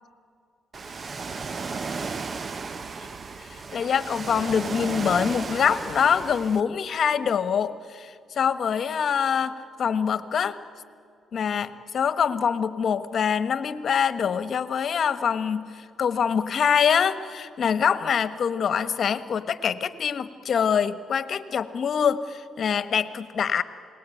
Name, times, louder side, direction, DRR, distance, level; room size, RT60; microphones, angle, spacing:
Ocean, 0.7-6.6, right 4 dB, 40° right, 0.8 m, -34 dB
voice 1, 3.7-10.6 11.3-23.6, left 7 dB, 55° left, 12 dB, 1.3 m, -24 dB
28.5 x 20.0 x 9.2 m, 2.4 s
cardioid pair, 90°, 0 cm